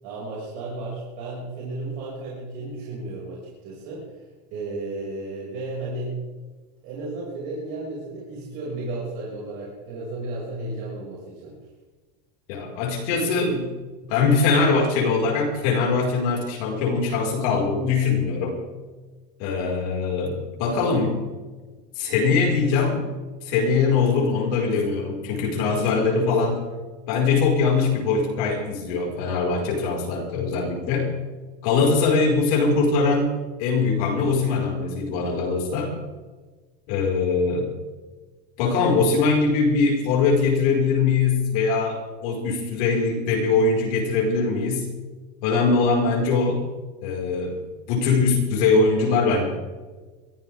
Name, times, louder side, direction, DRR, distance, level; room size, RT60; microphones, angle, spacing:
voice 1, 0.0-4.2 4.5-6.2 6.8-11.5, right 2 dB, 60° right, -6 dB, 6.4 m, -33 dB
voice 2, 12.5-13.7 14.1-18.6 19.4-21.2 22.0-23.0 23.4-26.6 27.1-31.1 31.6-33.3 33.6-35.9 36.9-37.7 38.6-44.9 45.4-46.6 47.0-47.6 47.9-49.5, left 4 dB, 60° left, -1 dB, 5.2 m, -22 dB
23.0 x 15.5 x 3.7 m, 1.3 s
supercardioid pair, 170°, 21 cm